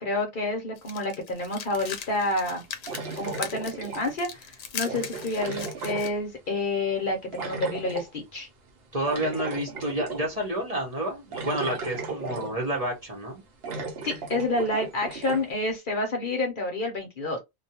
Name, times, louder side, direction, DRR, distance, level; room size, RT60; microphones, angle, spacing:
voice 1, 0.0-2.6 3.2-8.5 14.0-17.4, left 2 dB, 55° left, 0.7 m, -29 dB
sound 1, 0.8-6.1, left 7 dB, 85° left, 1.0 m, -39 dB
sound 2, 1.5-1.6 2.9-4.3 4.8-6.6 7.3-8.1 9.1-10.3 10.7-10.8 11.3-12.8 13.2-13.3 13.6-15.5, right 3 dB, 65° right, 0.9 m, -36 dB
voice 2, 8.9-13.4, right 1 dB, 35° right, 0.8 m, -29 dB
2.3 x 2.2 x 2.7 m
omnidirectional pair, 1.2 m